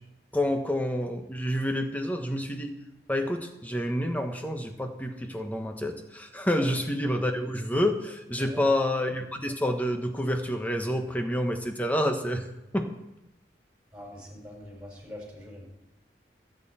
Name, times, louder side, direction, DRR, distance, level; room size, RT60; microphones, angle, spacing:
voice 1, 0.3-2.7 3.1-12.5 12.7-12.9, left 1 dB, 10° left, 5 dB, 1.2 m, -28 dB
voice 2, 13.9-15.7, left 1 dB, 5° right, -2 dB, 5.2 m, -43 dB
24.0 x 8.9 x 4.3 m, 0.90 s
head